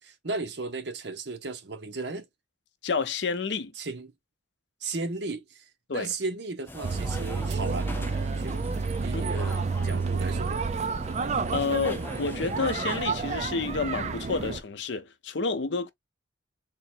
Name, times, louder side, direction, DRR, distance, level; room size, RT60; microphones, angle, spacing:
voice 1, 0.0-2.3 3.8-4.1 4.8-8.1 8.4-8.5 9.0-10.5, right 3 dB, 65° right, 0.9 m, -35 dB
voice 2, 2.8-3.7 5.9-6.1 9.1-9.2 11.5-15.9, left 4 dB, 70° left, 0.6 m, -29 dB
sound 1, 6.7-13.0, left 1 dB, 10° left, 0.5 m, -43 dB
sound 2, 6.8-14.6, right 4 dB, 35° right, 0.4 m, -30 dB
3.8 x 2.1 x 4.4 m
head